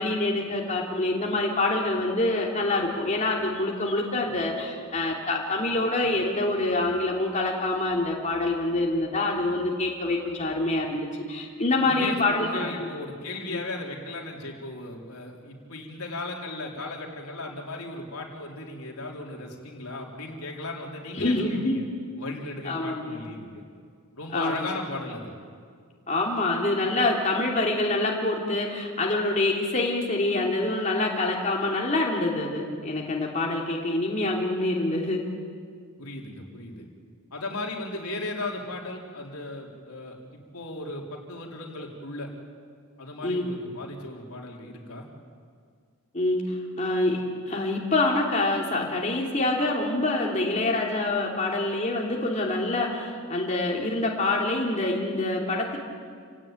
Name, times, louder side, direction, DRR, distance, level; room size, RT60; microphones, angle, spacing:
voice 1, 0.0-12.9 13.5-13.6 21.2-21.7 22.6-23.2 24.3-24.7 26.1-35.2 43.2-43.6 46.1-46.4 46.8-47.2 47.5-55.8, left 2 dB, 35° left, -2 dB, 3.1 m, -26 dB
voice 2, 11.8-21.8 22.2-23.6 24.2-25.3 36.0-36.9 37.3-40.2 40.5-42.3 43.0-45.1, left 2 dB, 85° left, 0 dB, 3.9 m, -36 dB
29.5 x 17.0 x 9.1 m, 2.1 s
head